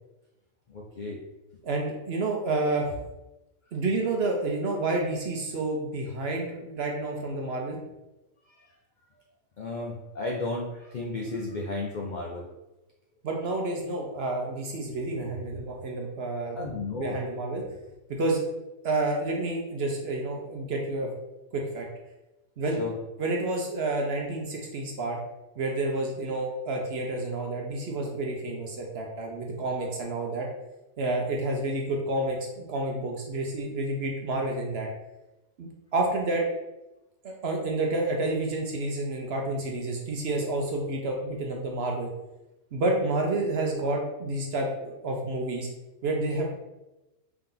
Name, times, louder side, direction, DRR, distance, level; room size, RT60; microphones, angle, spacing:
voice 1, 0.7-1.2 9.6-12.5 16.6-17.2 22.8-22.9, left 3 dB, 70° left, -1 dB, 0.4 m, -33 dB
voice 2, 1.6-2.9 3.7-7.8 13.2-16.6 16.9-17.6 18.2-18.4 18.8-21.1 21.5-21.8 22.6-22.8 23.2-25.2 25.6-30.5 31.0-34.9 35.6-36.4 37.2-42.1 42.7-45.7 46.0-46.5, right 2 dB, 60° right, 0 dB, 0.8 m, -29 dB
3.6 x 2.9 x 3.8 m, 0.98 s
omnidirectional pair, 1.5 m